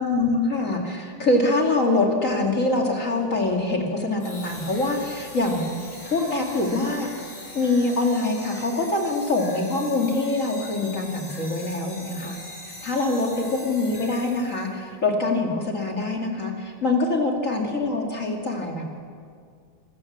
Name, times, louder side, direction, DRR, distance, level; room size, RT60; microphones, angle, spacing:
voice 1, 0.0-5.7 6.1-7.1 7.5-12.4 12.8-18.8, left 2 dB, 25° left, 1 dB, 1.9 m, -24 dB
sound 1, 4.2-14.7, left 2 dB, 60° left, 9.2 m, -41 dB
24.5 x 15.0 x 7.3 m, 2.1 s
omnidirectional pair, 4.4 m